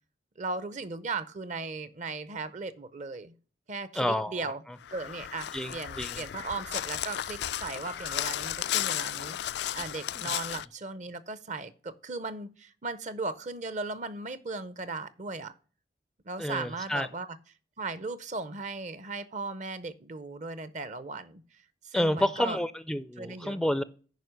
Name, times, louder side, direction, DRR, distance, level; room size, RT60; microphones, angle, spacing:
voice 1, 0.4-3.3 3.7-4.6 4.9-15.5 16.2-17.3 17.8-21.4 21.8-22.6 23.2-23.6, right 3 dB, 45° right, 0.7 m, -37 dB
voice 2, 4.0-4.5 5.5-6.3 10.2-10.3 16.4-17.1 21.9-23.8, left 1 dB, ahead, 0.4 m, -30 dB
Crow, 4.8-10.7, left 12 dB, 70° left, 0.3 m, -34 dB
9.2 x 5.2 x 6.4 m
head